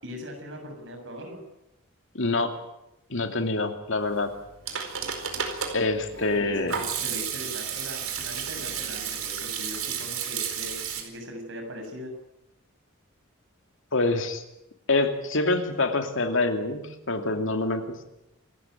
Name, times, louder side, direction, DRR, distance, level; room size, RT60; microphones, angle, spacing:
voice 1, 0.0-1.4 6.1-12.1, left 1 dB, 60° right, 3 dB, 7.0 m, -40 dB
voice 2, 2.1-2.6 3.1-4.3 5.7-6.7 13.9-14.4 14.9-18.0, left 2 dB, 65° left, 6 dB, 2.8 m, -26 dB
Hands / Sink (filling or washing), 4.3-11.0, right 7 dB, 85° right, 4.5 m, -32 dB
28.0 x 13.0 x 9.4 m, 0.87 s
head